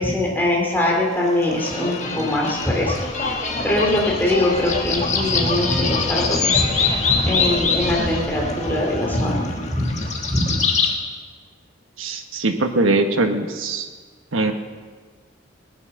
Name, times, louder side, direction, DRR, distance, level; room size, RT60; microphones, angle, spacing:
voice 1, 0.0-2.9 3.6-10.0 10.3-10.6, left 1 dB, 10° left, -3 dB, 2.6 m, -22 dB
sound 1, 1.2-10.9, left 4 dB, 35° left, 1.6 m, -24 dB
voice 2, 12.0-13.9 14.3-14.5, right 2 dB, 90° right, 6 dB, 1.3 m, -21 dB
18.0 x 11.0 x 6.6 m, 1.5 s
head